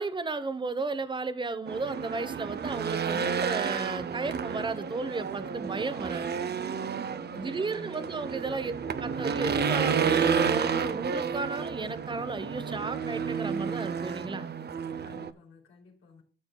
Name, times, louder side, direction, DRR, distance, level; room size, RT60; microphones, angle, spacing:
voice 1, 0.0-6.3 7.3-8.7 9.0-14.5, right 3 dB, 25° right, 1.0 m, -34 dB
Race car auto racing / Engine, 1.7-15.3, right 6 dB, 55° right, 0.8 m, -31 dB
voice 2, 7.0-8.1 15.0-16.2, left 4 dB, 90° left, 3.5 m, -54 dB
13.5 x 6.9 x 2.3 m
cardioid pair, 80°, 21 cm